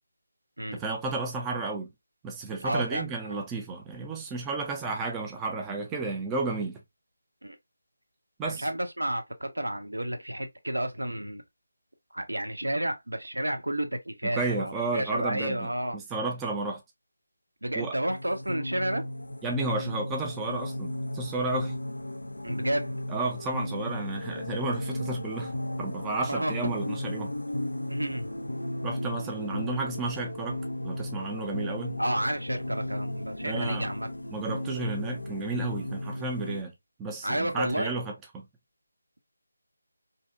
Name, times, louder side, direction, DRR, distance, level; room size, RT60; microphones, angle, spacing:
voice 1, 0.7-1.9 2.2-6.8 8.4-8.7 14.4-16.8 17.7-17.9 19.4-21.8 23.1-27.3 28.8-32.0 33.4-33.9 34.3-36.7 37.0-38.5, right 3 dB, 10° right, 0.3 m, -32 dB
voice 2, 2.6-3.0 3.3-3.4 7.4-7.6 8.4-11.4 12.1-16.0 17.6-19.1 22.4-22.9 26.2-26.6 27.9-28.3 32.0-34.1 37.2-38.0, right 1 dB, 75° right, 0.6 m, -31 dB
sound 1, 18.1-36.6, left 1 dB, 80° left, 0.3 m, -35 dB
2.6 x 2.0 x 2.2 m
figure-of-eight pair, 160°, 0 cm